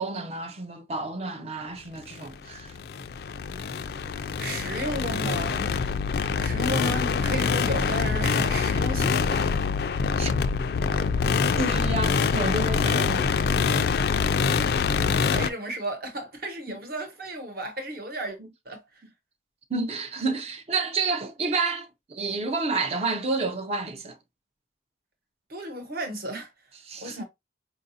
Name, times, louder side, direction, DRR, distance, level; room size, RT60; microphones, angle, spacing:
voice 1, 0.0-2.7 10.2-10.3 11.6-13.5 16.7-16.8 19.7-24.2 26.9-27.2, right 3 dB, 35° right, 0.5 m, -30 dB
sound 1, 2.2-15.5, left 5 dB, 55° left, 0.3 m, -25 dB
voice 2, 4.4-5.7 6.4-9.5 15.2-18.4 18.6-19.0 25.5-26.5 27.0-27.2, right 1 dB, 50° right, 1.1 m, -33 dB
4.7 x 2.5 x 2.7 m
head